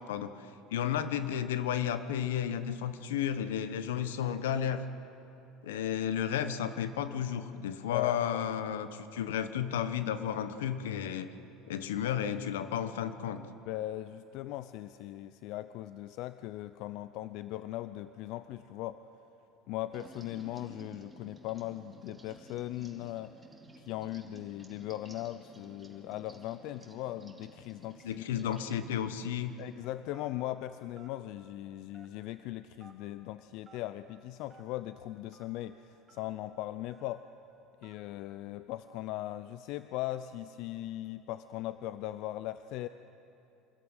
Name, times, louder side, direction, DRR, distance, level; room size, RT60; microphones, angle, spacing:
voice 1, 0.0-4.9 5.6-11.3 11.7-13.4 28.0-29.6, left 9 dB, 85° left, 11 dB, 1.1 m, -33 dB
voice 2, 7.9-8.5 13.7-19.0 19.7-23.3 23.8-28.2 29.6-37.2 37.8-42.9, left 14 dB, 65° left, 13 dB, 0.5 m, -39 dB
sound 1, 19.9-29.7, right 2 dB, 10° right, 2.6 m, -54 dB
Telephone, 30.1-30.4 31.0-31.1 31.9-32.3 32.8-32.9 33.6-33.8 34.5-34.6 35.3-35.4 36.1-36.2 36.9-37.1 37.8-38.0, right 5 dB, 30° right, 4.5 m, -56 dB
25.0 x 14.0 x 9.0 m, 3.0 s
hypercardioid pair, 90°, 0 cm